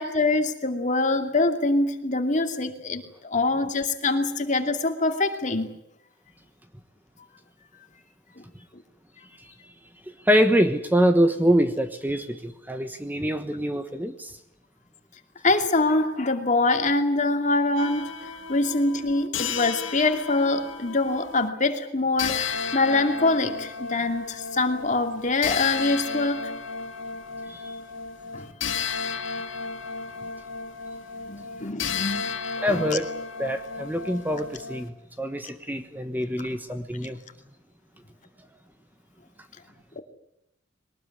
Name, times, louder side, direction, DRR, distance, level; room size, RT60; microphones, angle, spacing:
voice 1, 0.0-5.7 15.4-18.0 18.5-26.4 28.3-28.5 31.3-32.9, left 2 dB, 40° left, 6 dB, 2.6 m, -24 dB
voice 2, 10.2-14.3 27.5-27.8 32.6-33.1 33.4-37.2, equal, 10° right, 8 dB, 1.3 m, -24 dB
sound 1, 17.8-21.5 22.2-34.9, left 6 dB, 85° left, 2.5 m, -33 dB
22.5 x 19.5 x 9.7 m, 0.83 s
head